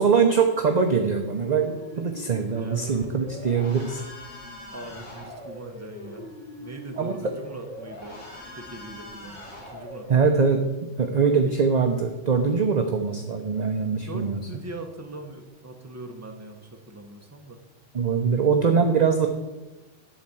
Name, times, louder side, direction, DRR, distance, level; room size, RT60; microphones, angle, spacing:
voice 1, 0.0-4.0 7.0-7.3 10.1-10.6 11.0-14.4 17.9-19.3, right 5 dB, 40° right, 4 dB, 0.7 m, -22 dB
sound 1, 1.3-10.5, left 1 dB, 85° left, 2.7 m, -41 dB
voice 2, 2.5-3.1 4.7-8.2 8.6-10.3 14.0-17.6, right 1 dB, 15° right, 3 dB, 1.0 m, -41 dB
11.5 x 4.3 x 7.7 m, 1.1 s
omnidirectional pair, 1.3 m